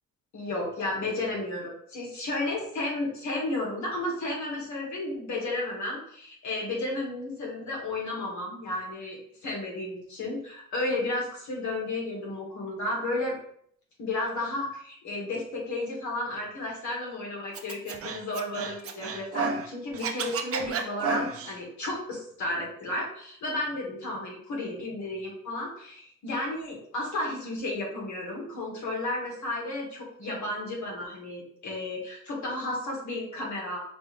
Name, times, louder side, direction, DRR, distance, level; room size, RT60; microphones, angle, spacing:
voice 1, 0.3-13.4 14.0-33.8, left 2 dB, 70° left, -2 dB, 1.7 m, -33 dB
Scratching (performance technique), 17.5-19.7 19.9-21.5, right 5 dB, 50° right, 0.6 m, -31 dB
5.1 x 2.6 x 3.3 m, 0.64 s
cardioid pair, 90°, 30 cm